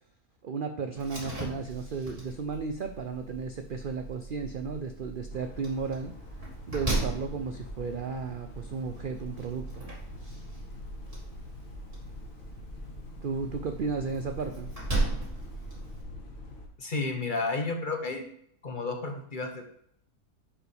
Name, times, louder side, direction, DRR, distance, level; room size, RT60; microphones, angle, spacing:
voice 1, 0.4-6.1 6.7-9.8 13.2-14.7, right 5 dB, 70° right, 6 dB, 0.4 m, -34 dB
Slam, 1.0-16.0, right 2 dB, 25° right, 2.4 m, -38 dB
sound 1, 5.3-16.7, left 1 dB, 65° left, 1.9 m, -44 dB
voice 2, 16.8-18.2 18.6-19.8, left 3 dB, 40° left, 4 dB, 0.9 m, -32 dB
10.0 x 4.8 x 3.4 m, 0.66 s
omnidirectional pair, 1.6 m